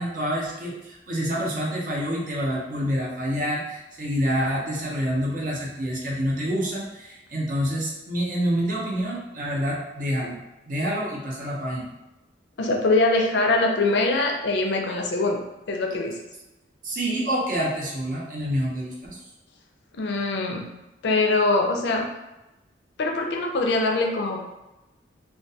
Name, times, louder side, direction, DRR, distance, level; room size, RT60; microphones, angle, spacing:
voice 1, 0.0-11.9 16.8-19.2, equal, 45° right, -3 dB, 0.6 m, -27 dB
voice 2, 12.6-15.4 15.7-16.2 19.9-20.7 21.0-22.1 23.0-24.4, left 2 dB, 70° left, 1 dB, 0.4 m, -23 dB
2.2 x 2.2 x 2.6 m, 1.0 s
head